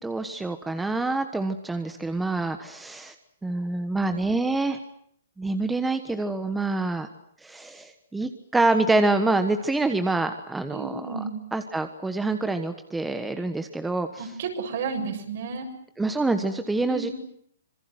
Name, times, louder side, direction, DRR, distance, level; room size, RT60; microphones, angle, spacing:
voice 1, 0.0-3.1 3.4-4.8 5.4-7.1 7.4-11.2 11.5-14.1 16.0-17.1, right 2 dB, 5° right, 8 dB, 1.3 m, -26 dB
voice 2, 10.7-11.4 14.2-15.7 16.9-17.1, right 5 dB, 55° right, 4 dB, 7.3 m, -32 dB
26.5 x 22.0 x 7.9 m, 0.67 s
hypercardioid pair, 155°, 0 cm